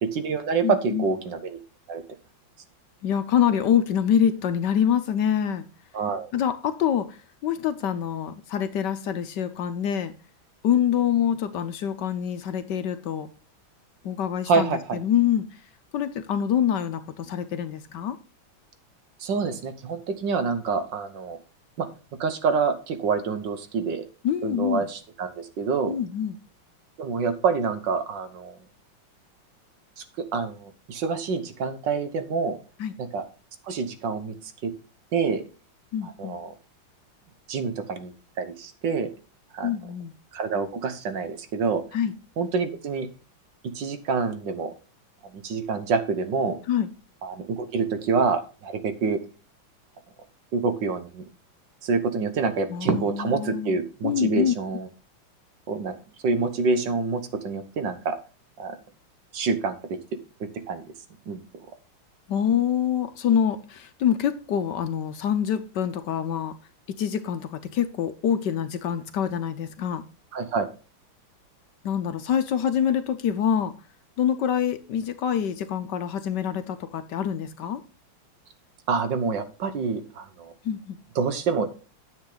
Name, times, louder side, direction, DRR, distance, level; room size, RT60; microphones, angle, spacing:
voice 1, 0.0-1.6 1.9-2.0 5.9-6.3 14.5-15.0 19.2-21.4 21.8-21.9 22.2-24.0 24.4-26.0 27.0-28.6 30.0-32.6 33.0-33.2 33.7-34.7 35.1-35.4 36.0-36.5 37.5-38.1 38.4-39.1 39.5-39.7 40.3-41.8 42.4-43.1 43.7-44.7 45.4-46.6 47.2-49.2 50.5-51.3 51.8-54.9 55.7-55.9 56.2-58.1 58.6-58.8 59.3-60.0 60.4-60.8 61.3-61.4 70.3-70.7 78.9-80.5 81.1-81.7, right 5 dB, 65° right, 1.7 m, -27 dB
voice 2, 0.6-1.1 3.0-5.7 6.3-10.1 10.6-13.3 14.0-15.6 15.9-18.2 24.2-24.9 25.9-26.4 32.8-32.9 35.9-36.4 39.6-40.1 41.9-42.1 46.7-46.9 52.7-54.5 62.3-66.6 66.9-70.0 71.8-73.8 74.2-77.8 80.6-81.0, left 9 dB, 70° left, 1.2 m, -25 dB
9.6 x 7.5 x 3.9 m
omnidirectional pair, 2.2 m